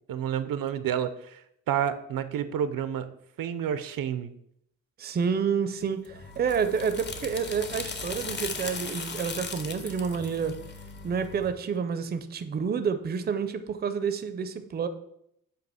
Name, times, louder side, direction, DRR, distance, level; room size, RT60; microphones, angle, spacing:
voice 1, 0.1-1.4 1.7-4.3, right 9 dB, 80° right, 12 dB, 0.6 m, -30 dB
voice 2, 5.0-10.6 11.0-14.9, right 6 dB, 30° right, 9 dB, 0.4 m, -29 dB
sound 1, 6.0-11.5, left 4 dB, 35° left, 0.6 m, -38 dB
7.9 x 2.9 x 5.5 m, 0.74 s
wide cardioid pair, 165°, 33 cm